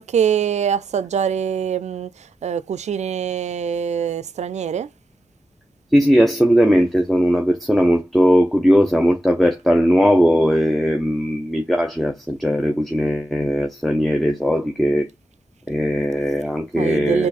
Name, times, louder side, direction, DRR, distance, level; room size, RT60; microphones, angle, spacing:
voice 1, 0.0-4.9 16.8-17.3, right 8 dB, 85° right, 0.4 m, -23 dB
voice 2, 5.9-15.1 15.7-17.3, equal, ahead, 0.7 m, -18 dB
4.5 x 2.6 x 4.1 m
wide cardioid pair, 65°, 11 cm